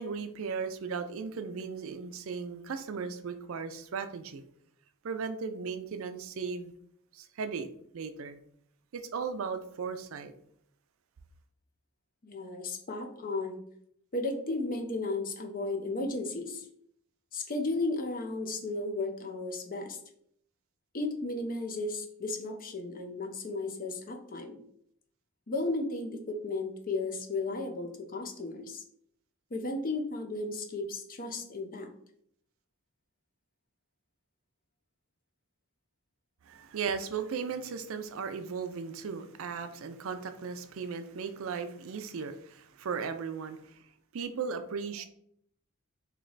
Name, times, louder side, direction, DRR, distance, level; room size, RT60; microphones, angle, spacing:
voice 1, 0.0-4.4 5.0-6.7 7.1-7.7 7.9-8.4 8.9-10.3 36.4-43.8 44.1-45.0, right 5 dB, 70° right, 9 dB, 0.4 m, -36 dB
voice 2, 12.2-13.6 14.1-16.7 17.3-20.0 20.9-24.6 25.5-28.8 29.5-31.9, left 2 dB, 45° left, 4 dB, 0.6 m, -34 dB
3.2 x 3.0 x 3.8 m, 0.67 s
head